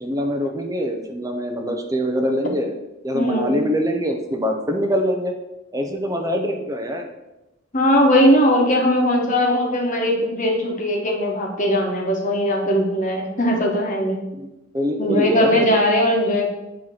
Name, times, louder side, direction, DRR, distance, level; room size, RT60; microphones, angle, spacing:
voice 1, 0.0-2.7 3.0-5.3 5.7-7.1 14.4-14.5 14.7-15.7, equal, 15° right, 3 dB, 0.7 m, -24 dB
voice 2, 3.1-3.6 7.7-14.2 15.0-16.5, equal, 35° left, 0 dB, 1.2 m, -19 dB
7.4 x 3.1 x 5.6 m, 0.96 s
head